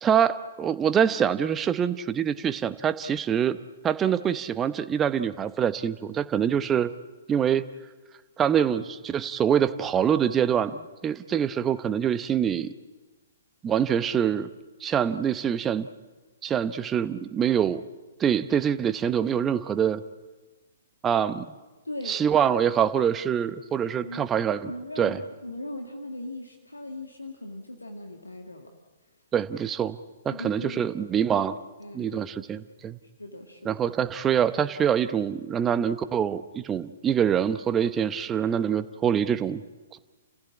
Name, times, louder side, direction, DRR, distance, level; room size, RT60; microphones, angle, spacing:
voice 1, 0.0-3.6 3.8-6.9 7.3-7.6 8.4-12.7 13.6-14.5 14.8-15.9 16.4-17.8 18.2-20.0 21.0-21.5 22.1-24.7 25.0-25.2 29.3-30.0 30.2-31.6 31.9-33.0 33.6-39.6, right 8 dB, 15° right, 12 dB, 0.9 m, -25 dB
voice 2, 21.8-22.2 23.8-24.3 24.7-28.7 30.3-30.8 31.8-32.4 33.2-33.7, left 1 dB, 85° left, 3 dB, 2.0 m, -39 dB
30.0 x 15.5 x 8.7 m, 1.3 s
figure-of-eight pair, 120°, 0 cm